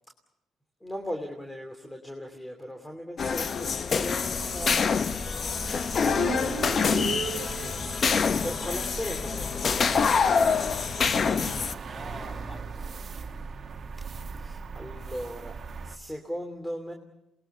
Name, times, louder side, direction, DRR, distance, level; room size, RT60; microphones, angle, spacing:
voice 1, 0.8-4.9 5.9-10.8 14.2-15.6 15.8-16.9, equal, 10° left, 4 dB, 2.9 m, -39 dB
sound 1, 3.2-11.7, left 5 dB, 45° left, 0.9 m, -26 dB
sound 2, 4.4-16.0, right 4 dB, 45° right, 1.7 m, -40 dB
sound 3, 6.0-8.0, right 8 dB, 75° right, 1.3 m, -35 dB
voice 2, 10.9-13.1, equal, 25° left, 5 dB, 6.9 m, -46 dB
28.0 x 21.0 x 6.9 m, 0.84 s
cardioid pair, 90°, 0 cm